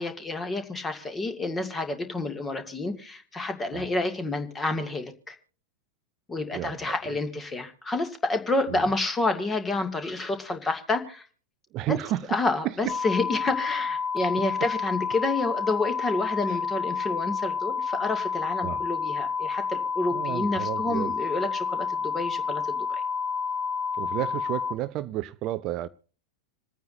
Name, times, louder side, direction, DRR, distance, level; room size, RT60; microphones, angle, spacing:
voice 1, 0.0-5.4 6.3-11.3 11.9-12.0 12.3-23.0, left 2 dB, 15° left, 2.2 m, -29 dB
voice 2, 6.5-7.2 8.7-8.8 11.7-12.4 12.6-12.9 16.4-16.6 18.6-18.8 20.1-21.1 24.0-25.9, right 14 dB, 35° right, 0.5 m, -32 dB
sound 1, 12.9-24.7, left 6 dB, 35° left, 1.5 m, -29 dB
27.5 x 9.3 x 2.7 m
figure-of-eight pair, 90°, 0 cm